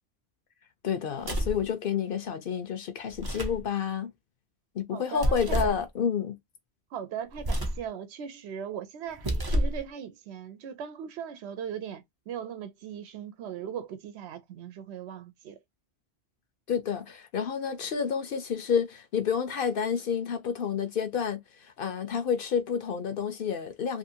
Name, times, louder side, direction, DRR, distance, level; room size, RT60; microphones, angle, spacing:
voice 1, 0.8-4.1 4.7-6.3 16.7-24.0, left 7 dB, 60° left, 0.7 m, -29 dB
sound 1, 1.2-1.7 3.1-3.6 5.2-5.8 7.3-7.9 9.1-9.8, equal, 25° right, 0.5 m, -29 dB
voice 2, 4.9-5.8 6.9-15.6, right 8 dB, 80° right, 0.9 m, -39 dB
2.6 x 2.5 x 2.7 m
omnidirectional pair, 1.1 m